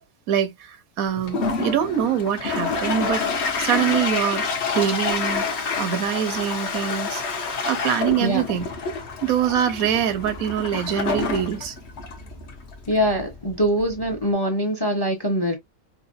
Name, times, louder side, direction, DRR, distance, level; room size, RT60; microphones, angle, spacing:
voice 1, 0.3-3.2 3.6-5.4 5.8-8.6 9.2-11.7, right 9 dB, 85° right, 1.2 m, -24 dB
Toilet flush, 1.1-14.3, left 4 dB, 55° left, 1.0 m, -28 dB
voice 2, 12.9-15.6, equal, 25° left, 0.5 m, -23 dB
4.9 x 2.1 x 2.5 m
omnidirectional pair, 1.5 m